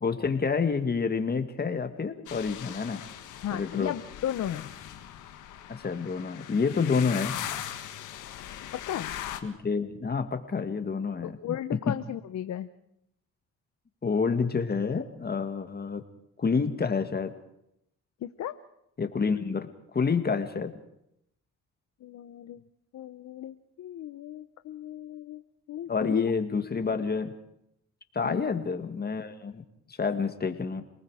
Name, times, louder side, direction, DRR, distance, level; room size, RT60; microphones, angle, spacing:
voice 1, 0.0-3.0 3.5-3.9 5.7-7.4 9.4-11.4 11.7-11.9 14.0-16.0 16.4-17.3 19.0-19.7 19.9-20.7 25.9-27.3 28.1-29.6 29.9-30.8, left 5 dB, 30° left, 7 dB, 2.0 m, -28 dB
sound 1, 2.3-9.4, left 11 dB, 85° left, 1.8 m, -40 dB
voice 2, 3.4-4.7 8.7-9.1 11.2-12.7 18.2-18.6 22.0-22.6 22.9-25.4 25.7-26.2 28.2-28.5, left 11 dB, 65° left, 10 dB, 0.9 m, -35 dB
28.0 x 19.5 x 5.0 m, 0.79 s
cardioid pair, 90°, 30 cm